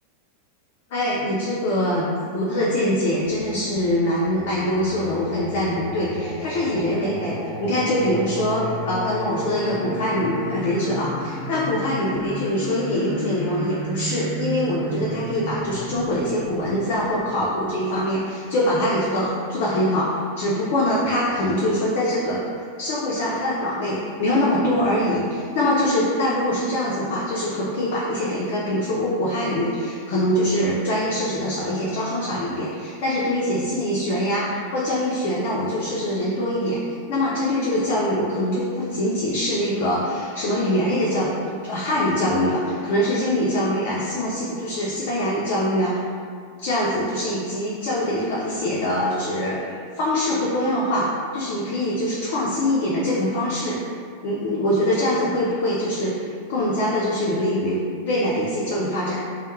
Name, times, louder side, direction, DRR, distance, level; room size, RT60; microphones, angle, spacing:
voice 1, 0.9-22.4 22.8-36.8 37.1-46.0 46.6-53.8 54.2-57.8 58.1-59.1, left 1 dB, 45° left, -6 dB, 0.4 m, -23 dB
Singing, 3.3-18.0, right 1 dB, 35° right, 0.5 m, -33 dB
2.1 x 2.0 x 2.9 m, 2.2 s
figure-of-eight pair, 90°, 0 cm